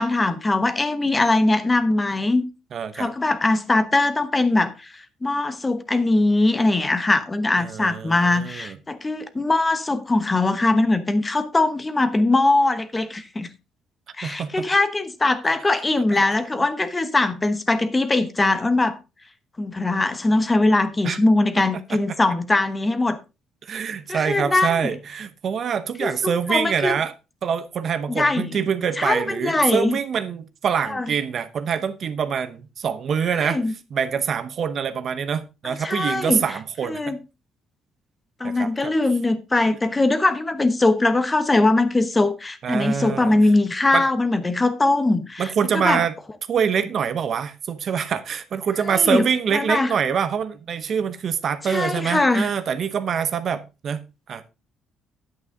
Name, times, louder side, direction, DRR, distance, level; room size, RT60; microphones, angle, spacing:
voice 1, 0.0-2.4 3.0-13.5 14.2-19.0 19.6-23.2 24.1-24.9 26.0-26.9 28.2-28.5 29.0-29.9 30.9-31.1 33.3-33.7 35.8-36.4 36.9-37.2 38.4-46.0 48.9-49.2 49.5-49.9 51.7-52.5, left 2 dB, 15° left, 1.0 m, -21 dB
voice 2, 2.7-3.1 7.6-8.8 14.2-14.7 16.1-16.2 21.0-21.2 21.7-22.0 23.6-27.1 27.4-37.2 38.4-38.9 42.6-43.4 43.9-44.0 45.4-46.1 46.5-54.5, right 7 dB, 50° right, 0.9 m, -25 dB
9.5 x 8.4 x 3.7 m
cardioid pair, 115°, 0 cm